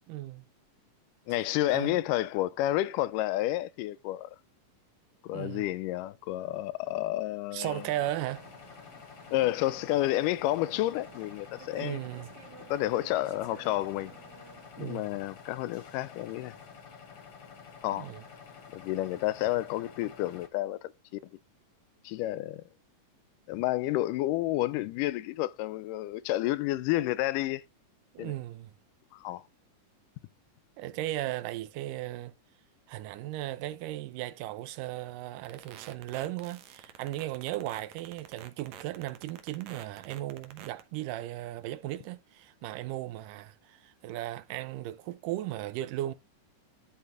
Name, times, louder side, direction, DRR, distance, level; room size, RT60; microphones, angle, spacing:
voice 1, 0.1-0.5 1.7-2.0 5.3-5.7 7.5-8.5 11.8-12.3 14.8-15.2 17.9-18.2 28.1-28.7 30.8-32.3 32.9-46.1, right 15 dB, 85° right, 2.3 m, -36 dB
voice 2, 1.3-4.3 5.2-7.9 9.3-12.0 12.7-14.1 14.8-16.6 17.8-18.1 18.7-21.2 22.0-22.6 23.5-27.6 28.2-28.3 29.1-29.4, left 15 dB, 85° left, 2.1 m, -30 dB
sound 1, 7.6-20.5, left 6 dB, 50° left, 1.5 m, -50 dB
sound 2, 8.3-14.7, right 6 dB, 50° right, 1.4 m, -53 dB
sound 3, 35.4-40.8, right 10 dB, 70° right, 2.1 m, -47 dB
11.5 x 4.2 x 3.7 m
omnidirectional pair, 3.7 m